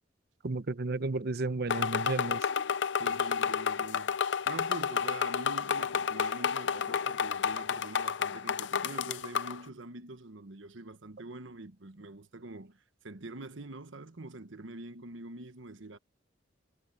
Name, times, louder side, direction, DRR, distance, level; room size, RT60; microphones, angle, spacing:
voice 1, 0.4-2.4, right 3 dB, 55° right, 0.8 m, -32 dB
sound 1, 1.7-9.6, left 7 dB, 65° left, 0.6 m, -31 dB
voice 2, 3.0-4.2 4.5-16.0, right 2 dB, 90° right, 1.3 m, -45 dB
head